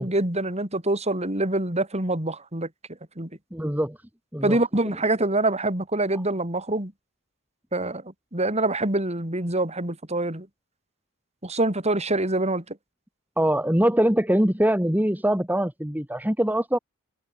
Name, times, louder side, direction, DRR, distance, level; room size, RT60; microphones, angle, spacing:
voice 1, 0.0-2.7 3.2-3.3 4.4-6.9 7.7-8.0 8.3-10.5 11.4-12.8, right 2 dB, 30° right, 5.6 m, -25 dB
voice 2, 3.5-4.0 4.3-4.6 13.4-16.8, right 1 dB, 10° right, 2.6 m, -23 dB
head